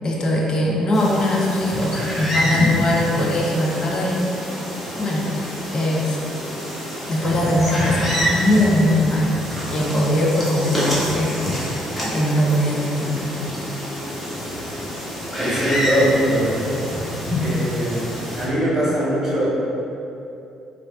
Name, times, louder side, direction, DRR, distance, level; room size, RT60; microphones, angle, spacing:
voice 1, 0.0-4.3 5.0-5.3 5.7-6.2 7.1-9.4 9.7-11.5 12.1-13.3, left 1 dB, 35° left, -3 dB, 0.5 m, -21 dB
sound 1, 0.9-18.5, equal, 5° left, 0.9 m, -27 dB
voice 2, 15.4-16.8 17.4-19.5, equal, 10° right, -9 dB, 1.2 m, -21 dB
3.2 x 2.3 x 2.5 m, 2.7 s
figure-of-eight pair, 45°, 2 cm